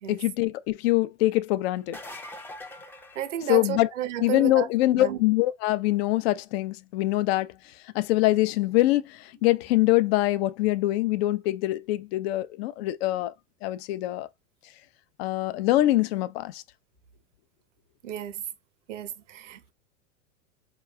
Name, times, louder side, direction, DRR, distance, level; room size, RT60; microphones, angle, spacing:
voice 1, 0.1-2.0 3.5-3.9 4.2-7.5 7.9-13.3 13.6-14.3 15.2-16.6, left 17 dB, 50° left, 0.6 m, -24 dB
sound 1, 1.8-4.0 9.5-9.6 11.4-11.5, left 1 dB, 5° left, 0.5 m, -43 dB
voice 2, 3.2-4.7 5.0-5.2 18.0-18.4 18.9-19.7, right 11 dB, 70° right, 0.9 m, -32 dB
4.6 x 3.0 x 2.3 m
hypercardioid pair, 90°, 38 cm